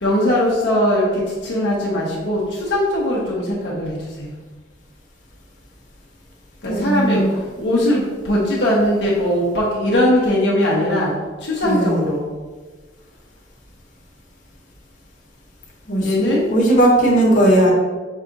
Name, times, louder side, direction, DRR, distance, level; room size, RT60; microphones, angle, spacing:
voice 1, 0.0-4.3 6.6-11.2 11.4-12.3 16.0-16.5, left 1 dB, 70° left, -5 dB, 0.9 m, -20 dB
voice 2, 6.7-7.3 11.6-11.9 15.9-17.7, right 1 dB, 45° left, -4 dB, 1.1 m, -17 dB
5.5 x 2.4 x 3.9 m, 1.3 s
head